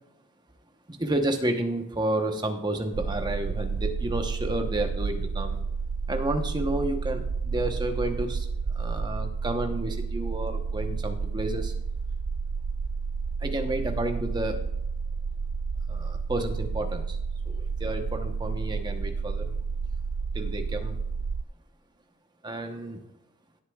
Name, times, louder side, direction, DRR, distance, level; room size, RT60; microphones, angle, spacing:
voice 1, 0.9-5.6 6.1-11.7 13.4-14.6 15.9-17.2 17.5-19.6 20.3-21.0 22.4-23.0, right 1 dB, 20° right, 5 dB, 0.9 m, -31 dB
sound 1, 2.9-21.4, right 5 dB, 65° right, 0.4 m, -31 dB
16.5 x 8.1 x 2.3 m, 0.84 s
head